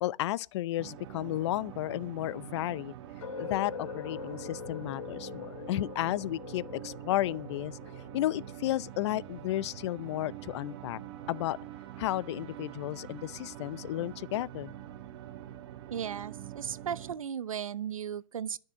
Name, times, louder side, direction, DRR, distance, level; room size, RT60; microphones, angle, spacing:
voice 1, 0.0-3.0 3.4-7.8 8.1-11.0 11.3-11.6 12.0-14.7, left 15 dB, 55° left, 0.6 m, -33 dB
sound 1, 0.8-17.1, right 11 dB, 55° right, 1.5 m, -45 dB
sound 2, 3.2-9.1, left 7 dB, 80° left, 2.1 m, -43 dB
voice 2, 15.9-18.6, right 8 dB, 90° right, 0.6 m, -36 dB
12.5 x 6.6 x 8.2 m
hypercardioid pair, 125°, 17 cm